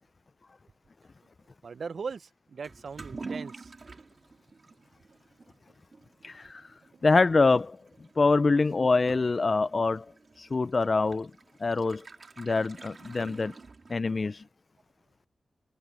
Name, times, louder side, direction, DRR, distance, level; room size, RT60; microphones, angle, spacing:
voice 1, 1.6-3.7, right 5 dB, 70° right, 0.5 m, -39 dB
Toilet flush / Liquid, 2.6-14.3, right 4 dB, 50° right, 2.9 m, -48 dB
voice 2, 6.2-6.7 7.0-7.8 8.2-10.1 10.4-11.3 11.6-12.0 12.4-13.5 13.9-14.4, left 3 dB, 45° left, 0.4 m, -25 dB
wide cardioid pair, 90°, 0 cm